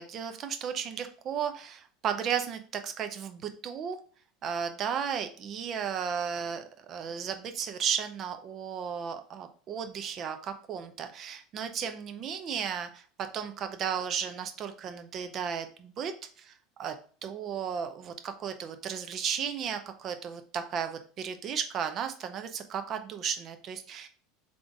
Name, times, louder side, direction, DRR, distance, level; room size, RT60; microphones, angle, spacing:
voice 1, 0.0-4.0 4.4-13.0 13.3-16.1 16.4-16.5 16.8-17.0 17.2-24.1, right 7 dB, 45° right, 8 dB, 0.6 m, -34 dB
3.7 x 3.7 x 3.4 m, 0.42 s
hypercardioid pair, 80°, 0 cm